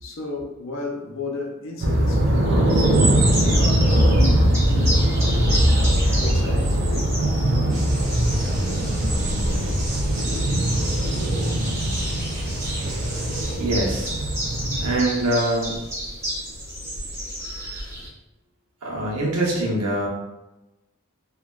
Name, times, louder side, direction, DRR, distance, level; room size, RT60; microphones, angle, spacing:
voice 1, 0.0-2.9 3.4-8.8, left 3 dB, 55° left, 1 dB, 0.5 m, -34 dB
sound 1, 1.8-15.0, right 1 dB, 50° right, 0.4 m, -21 dB
sound 2, 2.7-18.1, right 1 dB, 10° right, 1.0 m, -31 dB
sound 3, 7.7-13.6, right 1 dB, 35° right, 0.9 m, -34 dB
voice 2, 13.5-14.1 14.8-15.8 18.8-20.1, right 1 dB, 85° right, -3 dB, 0.9 m, -23 dB
3.3 x 2.3 x 2.4 m, 0.99 s
head